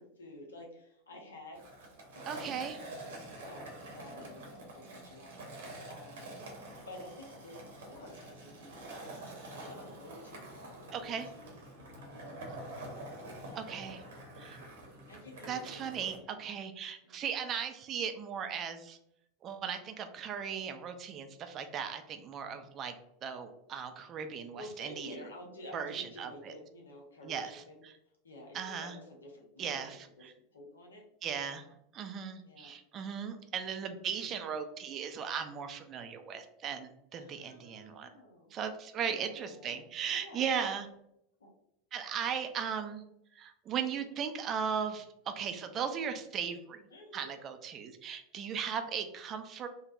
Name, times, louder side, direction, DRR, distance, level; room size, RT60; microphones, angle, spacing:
voice 1, 0.0-1.6 2.1-3.0 3.4-6.4 6.9-8.9 9.2-11.5 12.0-12.4 12.8-12.9 13.2-14.1 15.1-16.5 17.0-17.2 20.5-20.8 21.1-21.2 24.5-27.8 28.2-30.0 30.5-31.0 31.3-31.6 32.4-32.7 37.1-38.6 39.0-40.7 41.4-41.5 43.9-44.2 46.9-47.3, left 1 dB, 75° left, 0 dB, 0.7 m, -51 dB
Skateboard, 1.5-16.2, right 1 dB, 65° right, 0.8 m, -47 dB
voice 2, 2.3-2.8 10.9-11.3 13.6-14.0 14.4-14.6 15.5-19.0 19.4-22.9 23.2-25.1 25.7-26.5 27.2-27.6 28.5-28.9 29.6-30.3 31.2-31.6 31.9-38.1 38.5-40.9 41.9-43.0 43.4-46.8 47.1-49.7, right 7 dB, 35° right, 7 dB, 0.4 m, -37 dB
3.3 x 2.0 x 2.5 m, 0.79 s
figure-of-eight pair, 80°, 0 cm